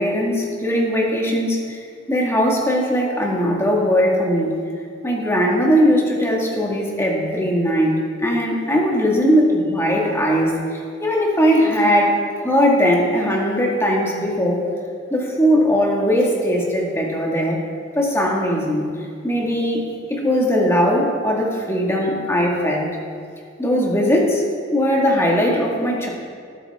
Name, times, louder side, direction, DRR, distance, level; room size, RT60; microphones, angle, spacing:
voice 1, 0.0-1.8 2.1-4.5 5.0-14.7 15.1-17.6 18.0-18.9 19.2-22.9 23.6-24.4 24.7-26.1, equal, 15° left, -2 dB, 1.9 m, -19 dB
19.5 x 9.0 x 3.6 m, 2.2 s
head